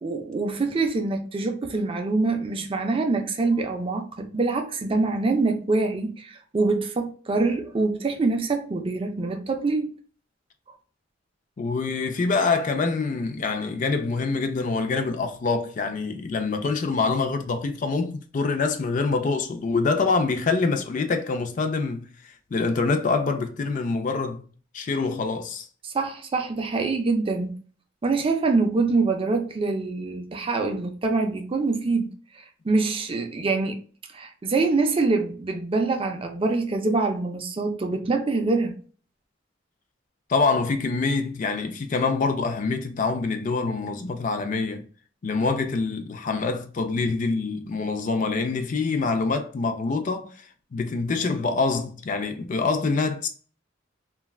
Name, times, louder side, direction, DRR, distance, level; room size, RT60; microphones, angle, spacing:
voice 1, 0.0-9.9 25.8-27.6 28.0-33.8 34.1-38.7, right 3 dB, 30° right, 0.4 m, -25 dB
voice 2, 11.6-22.1 22.5-24.4 24.7-25.7 40.3-44.9 45.2-50.3 50.7-53.3, left 4 dB, 40° left, 0.4 m, -25 dB
3.2 x 2.3 x 2.3 m
head